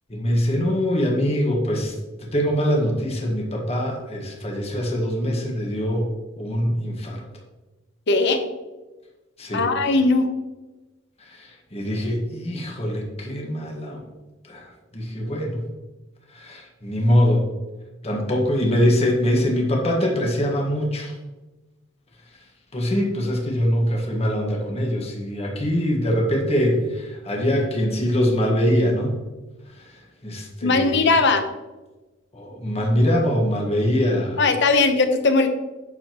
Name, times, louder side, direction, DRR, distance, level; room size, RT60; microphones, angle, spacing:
voice 1, 0.1-1.9 2.3-6.1 6.4-7.2 9.4-9.7 11.2-14.0 14.4-15.7 16.3-17.4 18.0-21.1 22.7-29.2 29.8-29.9 30.2-31.1 32.3-34.4, equal, 30° left, -1 dB, 1.5 m, -23 dB
voice 2, 8.1-8.4 9.5-10.3 30.6-31.4 34.4-35.5, left 3 dB, 60° left, 7 dB, 0.9 m, -18 dB
8.7 x 6.7 x 3.0 m, 1.1 s
head